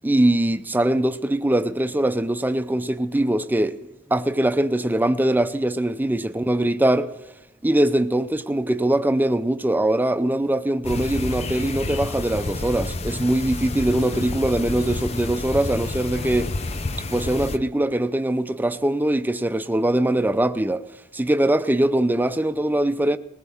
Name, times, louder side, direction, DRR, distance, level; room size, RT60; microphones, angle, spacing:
voice 1, 0.0-3.8 4.1-7.1 7.6-16.5 17.1-20.8 21.1-23.2, right 1 dB, 10° right, 0.5 m, -22 dB
sound 1, 10.8-17.6, left 2 dB, 35° left, 0.7 m, -29 dB
20.0 x 18.0 x 3.5 m
head